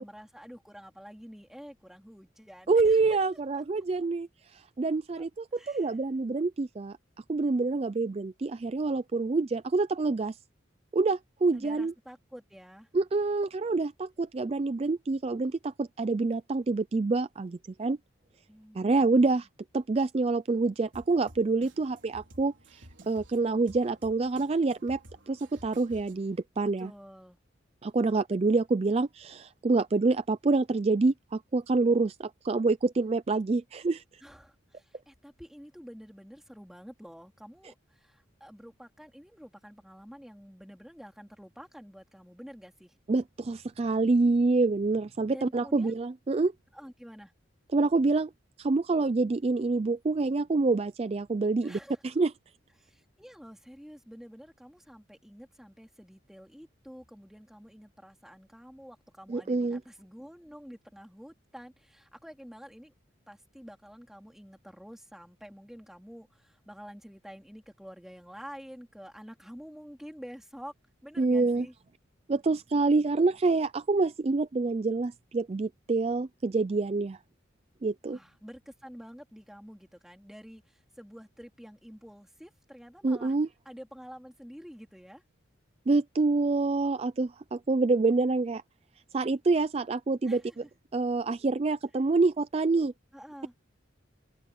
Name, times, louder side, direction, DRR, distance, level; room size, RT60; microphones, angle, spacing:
voice 1, 0.0-3.2 3.5-3.6 5.1-6.0 11.5-12.9 18.5-19.5 26.6-27.4 34.2-42.9 45.3-45.9 46.7-47.3 51.6-52.0 52.8-62.9 63.3-70.7 71.0-71.7 78.0-83.3 83.6-85.2 90.2-90.7 93.1-93.5, equal, ahead, 3.3 m, -49 dB
voice 2, 2.7-7.0 7.3-10.4 10.9-11.9 12.9-18.0 18.7-19.5 19.7-25.0 25.3-26.9 27.8-34.0 43.1-46.5 47.7-48.3 48.6-52.3 59.3-59.8 71.2-71.7 72.3-77.2 77.8-78.2 83.0-83.5 85.9-88.6 89.1-90.4 90.9-92.9, right 3 dB, 30° right, 0.4 m, -27 dB
Drum kit, 20.9-26.4, right 1 dB, 70° right, 4.4 m, -54 dB
head